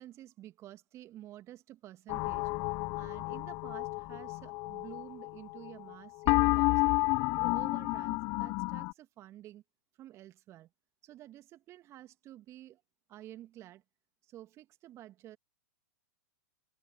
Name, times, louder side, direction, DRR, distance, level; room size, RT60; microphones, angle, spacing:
voice 1, 0.0-2.5 3.0-6.8 7.3-9.6 10.0-10.7 11.0-12.8 13.1-13.8 14.2-15.4, right 13 dB, 30° right, 2.1 m, -51 dB
sound 1, 2.1-5.9 6.2-8.9, left 26 dB, 35° left, 0.4 m, -31 dB
figure-of-eight pair, 105°, 9 cm